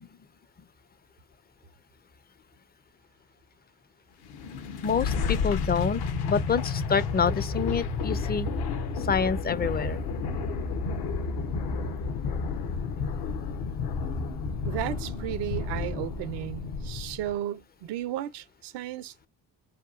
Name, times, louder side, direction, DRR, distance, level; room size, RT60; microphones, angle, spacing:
sound 1, 4.2-17.3, left 4 dB, 65° left, 0.8 m, -31 dB
voice 1, 4.8-8.5 9.1-10.0, left 6 dB, 25° left, 0.4 m, -27 dB
voice 2, 14.6-19.3, right 12 dB, 75° right, 0.6 m, -34 dB
2.9 x 2.3 x 2.4 m
supercardioid pair, 60°, 42 cm